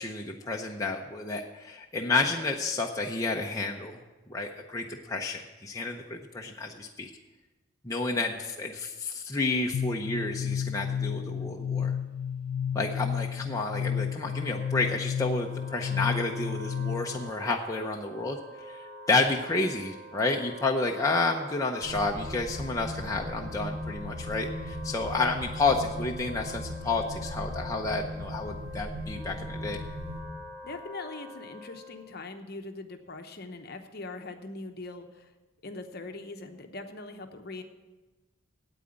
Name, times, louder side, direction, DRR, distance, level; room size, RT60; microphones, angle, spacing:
voice 1, 0.0-4.0 4.3-7.1 7.8-11.9 12.7-18.4 18.7-29.8, left 3 dB, 15° left, 0 dB, 0.6 m, -30 dB
sound 1, 9.7-17.3, left 8 dB, 90° left, 0.3 m, -32 dB
Wind instrument woodwind instrument, 14.0-32.1, equal, 35° right, 4.0 m, -46 dB
sound 2, 21.8-30.2, left 1 dB, 65° right, 4.2 m, -38 dB
voice 2, 30.6-35.3 35.6-37.6, left 2 dB, 45° left, 6 dB, 0.9 m, -41 dB
9.0 x 8.7 x 8.3 m, 1.2 s
head